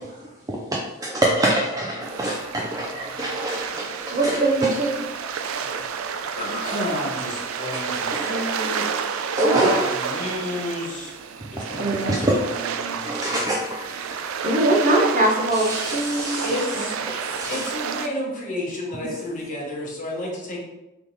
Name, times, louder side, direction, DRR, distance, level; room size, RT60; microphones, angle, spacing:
voice 1, 0.5-4.7 5.7-5.8 8.1-8.3 9.3-9.8 12.1-12.4 13.0-14.2 15.5-16.6 17.1-17.7, right 1 dB, 15° right, -2 dB, 0.4 m, -26 dB
sound 1, 2.0-18.1, right 6 dB, 85° right, 0.4 m, -30 dB
voice 2, 2.1-3.3 4.1-4.2 5.5-8.9 9.6-13.5 16.3-17.2 17.4-20.6, left 1 dB, 40° left, -2 dB, 1.0 m, -32 dB
voice 3, 4.1-4.9 9.4-9.7 11.8-12.1 14.4-16.8, right 2 dB, 40° right, -1 dB, 0.9 m, -21 dB
3.5 x 3.3 x 4.0 m, 0.98 s
head